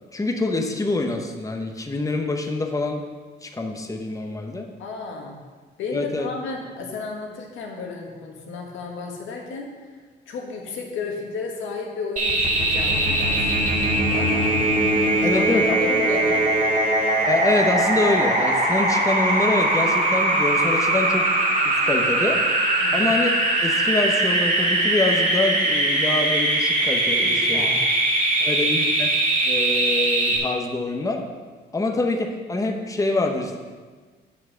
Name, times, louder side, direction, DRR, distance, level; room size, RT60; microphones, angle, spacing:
voice 1, 0.1-3.0 3.4-4.7 5.9-6.3 15.2-15.8 17.3-21.3 21.6-22.4 22.9-23.3 23.6-27.7 28.4-29.1 29.4-31.2 31.7-33.6, left 2 dB, 15° left, 3 dB, 1.0 m, -25 dB
voice 2, 4.8-5.4 5.8-10.0 10.3-14.6 15.2-16.4 22.8-23.1 27.2-27.9 28.4-28.6, left 4 dB, 80° left, 0 dB, 1.7 m, -33 dB
sound 1, 12.2-30.4, right 1 dB, 40° right, 1.9 m, -21 dB
7.6 x 6.1 x 5.7 m, 1.5 s
cardioid pair, 90°, 20 cm